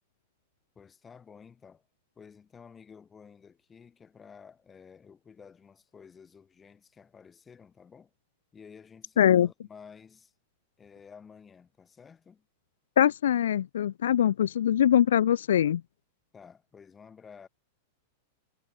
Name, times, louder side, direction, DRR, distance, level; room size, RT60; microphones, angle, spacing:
voice 1, 0.7-1.9 2.1-8.1 8.5-10.3 10.8-12.5 16.3-17.5, left 6 dB, 20° left, 6.6 m, -52 dB
voice 2, 9.2-9.5 13.0-15.8, left 10 dB, 75° left, 0.3 m, -22 dB
hypercardioid pair, 105°, 0 cm